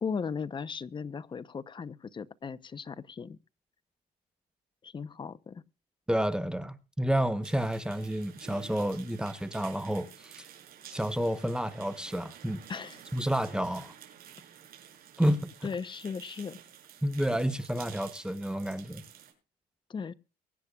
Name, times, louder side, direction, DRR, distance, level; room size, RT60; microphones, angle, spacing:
voice 1, 0.0-3.4 4.8-5.6 12.7-13.0 15.6-16.6 19.9-20.1, left 6 dB, 30° left, 0.8 m, -37 dB
voice 2, 6.1-10.5 10.9-12.6 13.1-13.9 15.2-15.7 17.0-19.0, equal, 5° right, 1.0 m, -30 dB
sound 1, 7.4-19.3, right 10 dB, 60° right, 5.9 m, -51 dB
23.5 x 9.8 x 2.4 m
cardioid pair, 110°, 17 cm